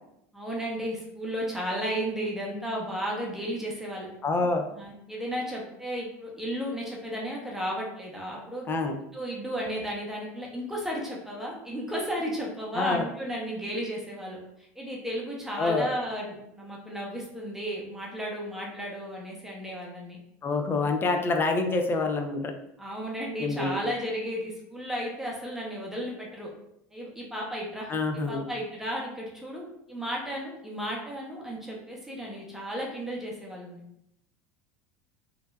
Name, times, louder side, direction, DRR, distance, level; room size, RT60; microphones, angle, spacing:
voice 1, 0.3-4.1 4.4-8.7 9.1-20.2 22.8-26.5 26.9-33.8, equal, 5° right, -3 dB, 0.7 m, -34 dB
voice 2, 4.2-4.7 8.7-9.0 12.8-13.1 15.6-15.9 20.4-22.5 23.4-23.8 27.9-28.4, left 3 dB, 25° left, 5 dB, 0.4 m, -26 dB
3.2 x 2.1 x 2.2 m, 0.79 s
hypercardioid pair, 90°, 8 cm